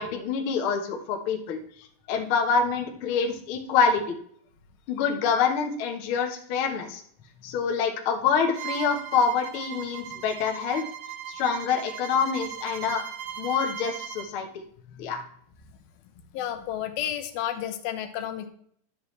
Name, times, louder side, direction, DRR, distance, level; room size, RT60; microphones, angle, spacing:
voice 1, 0.0-1.6 2.1-4.0 4.9-7.0 7.4-10.8 11.3-13.0 13.4-14.5 15.0-15.2, left 6 dB, 65° left, 2 dB, 1.3 m, -26 dB
Bowed string instrument, 8.5-14.3, right 10 dB, 70° right, 1.7 m, -38 dB
voice 2, 16.3-18.5, left 10 dB, 90° left, 7 dB, 2.7 m, -32 dB
11.5 x 6.9 x 3.2 m, 0.64 s
omnidirectional pair, 4.1 m